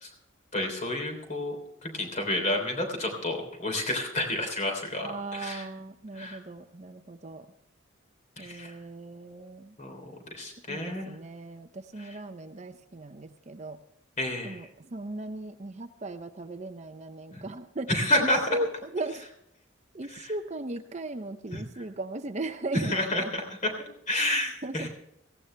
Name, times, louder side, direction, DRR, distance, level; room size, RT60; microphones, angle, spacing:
voice 1, 0.5-1.6 1.8-5.7 6.1-6.4 8.4-8.7 9.8-11.1 12.0-12.2 14.2-14.6 17.3-17.4 17.9-18.4 20.1-20.3 21.5-21.6 22.7-24.9, left 1 dB, 35° left, 3 dB, 3.3 m, -30 dB
voice 2, 5.0-7.5 8.4-9.7 10.7-13.8 14.4-17.9 18.2-18.7 18.9-19.2 19.9-23.3 24.6-24.9, right 2 dB, 35° right, 8 dB, 0.6 m, -37 dB
18.0 x 15.5 x 3.3 m, 0.78 s
head